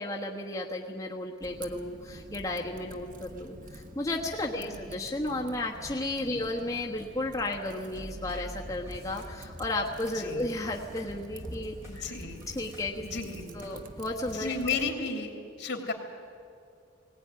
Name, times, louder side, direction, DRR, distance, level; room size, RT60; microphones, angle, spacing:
voice 1, 0.0-11.8 12.5-13.0 13.5-14.5, left 2 dB, 20° left, -3 dB, 1.4 m, -33 dB
Typing, 1.4-14.9, right 2 dB, 45° right, 1.1 m, -48 dB
voice 2, 4.6-4.9 6.3-6.4 10.1-10.5 11.9-12.4 13.0-13.7 14.3-15.9, left 4 dB, 65° left, 3 dB, 3.0 m, -34 dB
sound 1, 7.9-14.8, equal, 15° right, 5.7 m, -45 dB
20.0 x 17.5 x 9.6 m, 2.4 s
head